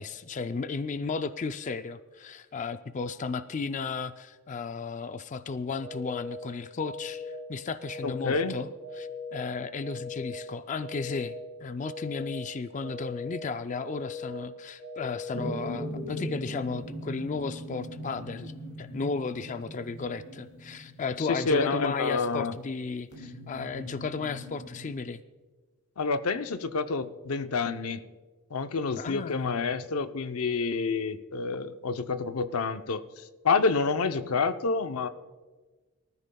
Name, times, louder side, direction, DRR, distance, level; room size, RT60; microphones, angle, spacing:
voice 1, 0.0-8.7 8.9-11.3 11.6-18.5 18.8-25.2 29.0-29.6, left 4 dB, 35° left, 11 dB, 0.4 m, -34 dB
sound 1, 5.8-6.3 6.8-7.3 7.8-8.3 8.8-9.3 9.8-10.3 10.8-11.3 11.8-12.3 12.8-13.3 13.8-14.3 14.8-15.3, left 4 dB, 10° left, 3.6 m, -39 dB
voice 2, 8.0-8.5 21.2-22.5 26.0-28.0 28.5-35.1, left 4 dB, 90° left, 10 dB, 0.7 m, -28 dB
sound 2, 15.3-22.2 23.1-24.9, equal, 55° left, 4.9 m, -40 dB
24.5 x 13.5 x 2.3 m, 1.3 s
head